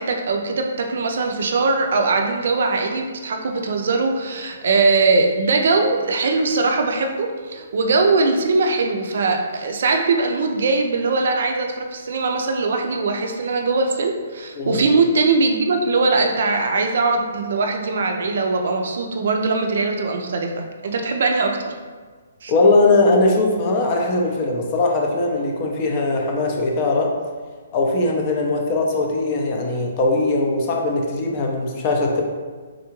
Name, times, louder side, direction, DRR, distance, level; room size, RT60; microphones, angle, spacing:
voice 1, 0.0-20.5 20.8-21.7 22.4-22.5, right 3 dB, 60° right, 3 dB, 0.4 m, -21 dB
voice 2, 22.5-27.1 27.7-32.2, left 2 dB, 25° left, 0 dB, 0.4 m, -20 dB
3.6 x 2.3 x 2.9 m, 1.5 s
hypercardioid pair, 170°, 0 cm